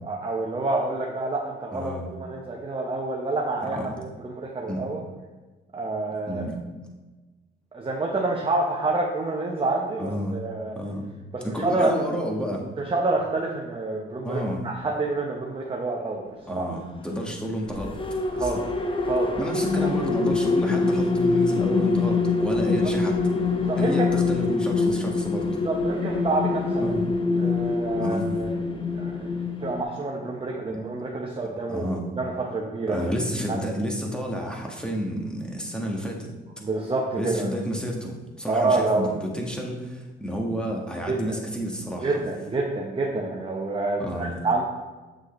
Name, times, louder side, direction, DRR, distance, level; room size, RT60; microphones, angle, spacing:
voice 1, 0.0-1.9 2.2-5.0 5.7-6.5 7.7-10.7 11.3-11.9 12.8-16.6 18.3-18.6 19.1-19.4 19.8-19.9 22.8-22.9 23.6-24.1 25.6-26.9 27.4-28.5 29.0-33.0 33.5-33.6 36.6-37.5 38.5-39.1 41.1-41.2 42.0-44.6, right 3 dB, 25° right, -1 dB, 1.0 m, -28 dB
voice 2, 1.7-2.1 3.6-3.9 4.7-4.9 6.3-6.6 10.0-10.4 10.7-11.1 11.4-12.7 14.2-14.6 16.5-18.0 18.4-18.5 19.4-23.2 23.8-25.6 26.8-27.0 28.0-28.3 30.7-30.8 31.7-32.0 32.9-36.3 37.2-42.2 44.0-44.4, equal, 5° left, -1 dB, 1.5 m, -30 dB
sound 1, 17.7-29.8, left 3 dB, 25° left, 0.9 m, -24 dB
7.8 x 6.2 x 3.2 m, 1.2 s
cardioid pair, 90°, 20 cm